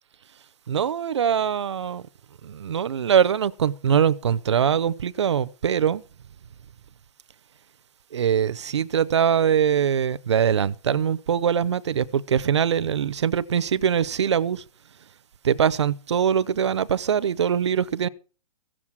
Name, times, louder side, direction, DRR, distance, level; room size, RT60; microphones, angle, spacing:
voice 1, 0.7-2.1 2.4-6.0 8.1-14.6 15.4-18.1, right 8 dB, 45° right, 0.6 m, -22 dB
15.5 x 7.4 x 6.1 m
hypercardioid pair, 175°, 21 cm